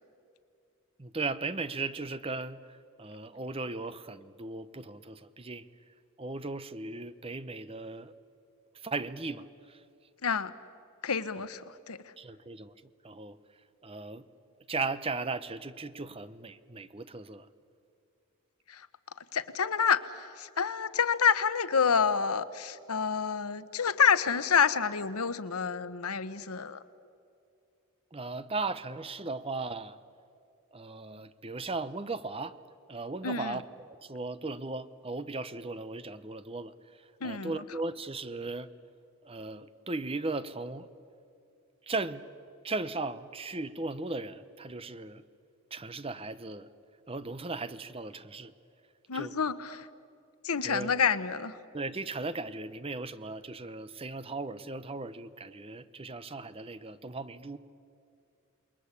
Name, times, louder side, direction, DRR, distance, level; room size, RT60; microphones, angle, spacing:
voice 1, 1.0-5.7 6.2-8.1 8.7-9.8 12.2-12.7 13.0-13.4 13.8-14.2 14.7-17.5 28.1-30.0 30.7-32.6 32.9-38.7 39.2-40.9 41.8-42.3 42.6-45.2 45.7-46.7 47.1-48.5 49.1-49.3 50.6-50.9 51.7-57.6, right 3 dB, 25° right, 13 dB, 0.8 m, -37 dB
voice 2, 11.0-12.0 18.7-18.9 19.3-20.0 20.4-26.8 33.2-33.6 37.2-37.5 49.1-49.9 50.4-51.5, left 6 dB, 90° left, 13 dB, 1.1 m, -28 dB
28.0 x 21.0 x 8.3 m, 2.5 s
head